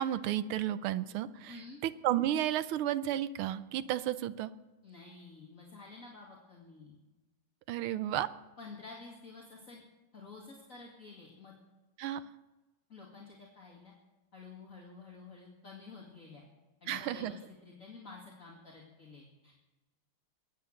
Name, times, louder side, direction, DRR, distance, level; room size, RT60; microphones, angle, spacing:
voice 1, 0.0-1.6 1.8-4.5 7.7-8.3 12.0-12.2 16.9-17.3, right 12 dB, 80° right, 14 dB, 1.6 m, -32 dB
voice 2, 1.5-1.8 4.8-6.9 8.6-9.8 10.1-11.5 12.9-13.9 14.3-16.4 16.8-19.6, left 4 dB, 40° left, -3 dB, 2.4 m, -50 dB
22.0 x 9.7 x 6.5 m, 1.1 s
omnidirectional pair, 2.4 m